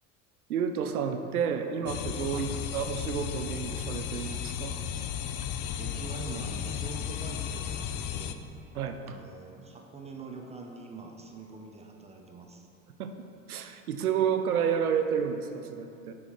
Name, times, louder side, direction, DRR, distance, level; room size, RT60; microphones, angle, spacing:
voice 1, 0.5-2.5 2.7-4.8 8.7-9.0 13.0-13.1 13.5-16.1, right 7 dB, 80° right, 7 dB, 0.7 m, -30 dB
sound 1, 1.9-8.3, left 8 dB, 35° left, 0.4 m, -34 dB
voice 2, 5.8-8.4 9.0-12.7, right 3 dB, 15° right, 1 dB, 0.7 m, -44 dB
9.5 x 6.2 x 3.1 m, 2.7 s
hypercardioid pair, 80°, 43 cm